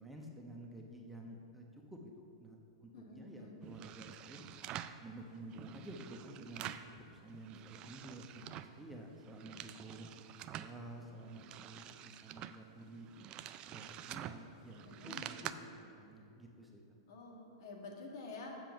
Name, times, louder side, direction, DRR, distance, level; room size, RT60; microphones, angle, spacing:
voice 1, 0.0-4.4 5.0-6.7 7.1-10.1 10.5-13.1 13.7-17.0, right 1 dB, 5° right, 0 dB, 0.9 m, -51 dB
voice 2, 2.9-3.6 14.8-15.2 17.1-18.7, left 3 dB, 65° left, -1 dB, 1.8 m, -49 dB
sound 1, 3.6-5.0 5.5-6.9 7.3-8.8 9.2-10.7 11.2-15.5, right 11 dB, 35° right, 0.4 m, -48 dB
7.6 x 7.0 x 5.9 m, 2.7 s
hypercardioid pair, 110°, 2 cm